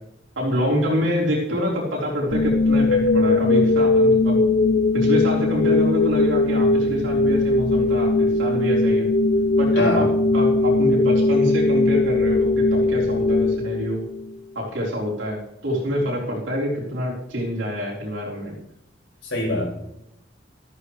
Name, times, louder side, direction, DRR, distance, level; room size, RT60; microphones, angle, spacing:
voice 1, 0.4-4.4 4.9-9.1 9.6-10.1 10.3-14.0 14.5-18.6, equal, 85° right, -4 dB, 4.3 m, -26 dB
sound 1, 2.3-14.3, left 2 dB, 55° left, 0.5 m, -19 dB
voice 2, 9.7-10.1 19.2-19.6, left 2 dB, 85° left, -3 dB, 5.8 m, -23 dB
13.5 x 13.5 x 3.3 m, 0.83 s
head